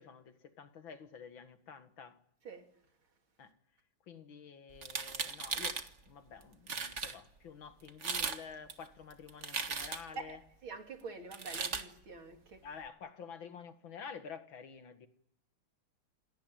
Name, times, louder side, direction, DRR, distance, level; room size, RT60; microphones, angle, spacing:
voice 1, 0.0-2.2 3.4-3.5 4.1-10.4 12.6-15.1, left 6 dB, 75° left, 2.4 m, -49 dB
sound 1, 4.8-5.9 6.4-6.5 6.7-7.1 7.9-8.4 8.7-10.2 11.3-11.9, right 5 dB, 40° right, 1.6 m, -37 dB
voice 2, 10.2-12.7, right 3 dB, 90° right, 3.8 m, -46 dB
28.0 x 18.0 x 9.0 m
omnidirectional pair, 2.2 m